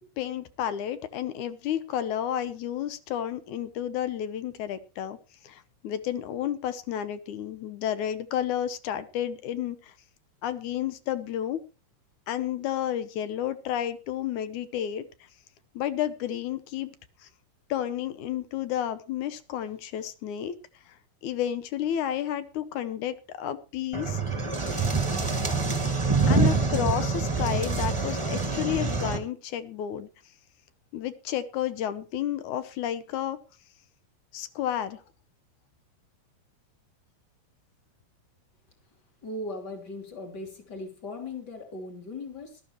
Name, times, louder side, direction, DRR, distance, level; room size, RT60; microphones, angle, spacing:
voice 1, 0.2-5.2 5.4-9.9 10.4-11.6 12.3-15.3 15.7-16.9 17.2-17.3 17.7-20.5 20.9-24.2 26.3-30.1 30.9-33.4 34.3-35.0, left 10 dB, 70° left, 13 dB, 2.2 m, -31 dB
sound 1, 23.9-29.2, right 4 dB, 15° right, 1.1 m, -26 dB
voice 2, 39.2-42.6, left 2 dB, 30° left, 4 dB, 3.4 m, -38 dB
19.0 x 13.0 x 3.1 m, 0.31 s
omnidirectional pair, 3.9 m